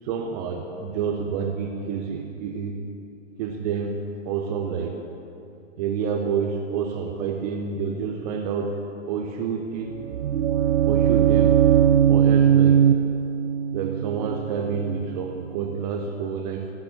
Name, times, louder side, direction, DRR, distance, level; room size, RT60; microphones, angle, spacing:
voice 1, 0.0-2.9 3.4-4.0 4.2-5.0 5.8-8.8 9.1-10.0 10.9-11.6 12.1-12.9 13.7-16.7, right 6 dB, 30° right, 4 dB, 0.9 m, -28 dB
sound 1, 9.8-15.7, right 9 dB, 75° right, 0.5 m, -20 dB
16.0 x 7.8 x 7.2 m, 2.7 s
figure-of-eight pair, 120°, 37 cm